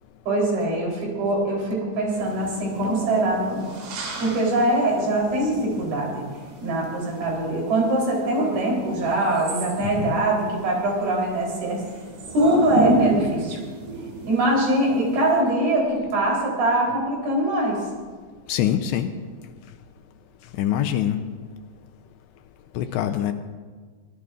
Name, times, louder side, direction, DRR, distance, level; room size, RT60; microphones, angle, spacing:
voice 1, 0.3-3.6 4.2-6.2 6.6-11.8 12.3-13.6 14.3-17.8, right 1 dB, 55° right, -2 dB, 5.4 m, -23 dB
sound 1, 2.1-15.4, right 2 dB, 75° right, 4.7 m, -32 dB
voice 2, 9.8-10.2 18.5-19.1 20.6-21.2 22.8-23.3, left 11 dB, 80° left, 7 dB, 2.7 m, -24 dB
23.0 x 18.0 x 2.5 m, 1.5 s
omnidirectional pair, 5.2 m